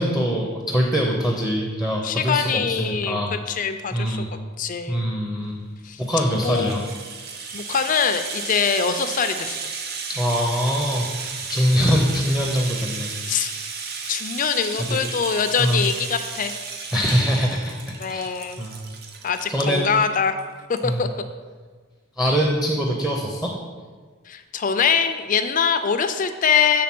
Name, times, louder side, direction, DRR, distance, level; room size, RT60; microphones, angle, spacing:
voice 1, 0.0-3.3 3.9-4.3 4.9-5.6 6.0-6.8 7.3-7.6 10.1-13.1 14.8-15.0 15.6-15.8 16.9-18.3 18.6-18.9 19.5-19.9 20.8-21.1 22.2-23.5, equal, ahead, 0 dB, 0.6 m, -23 dB
voice 2, 2.0-4.2 4.6-5.1 5.8-6.0 6.4-6.8 7.5-9.6 13.2-13.5 14.1-16.5 18.0-18.7 19.2-20.4 20.8-21.1 24.3-26.8, left 6 dB, 40° left, 9 dB, 0.4 m, -23 dB
Rattle (instrument), 5.9-20.0 20.4-20.5 20.8-20.9, right 5 dB, 50° right, 0.7 m, -34 dB
7.4 x 3.7 x 6.0 m, 1.5 s
head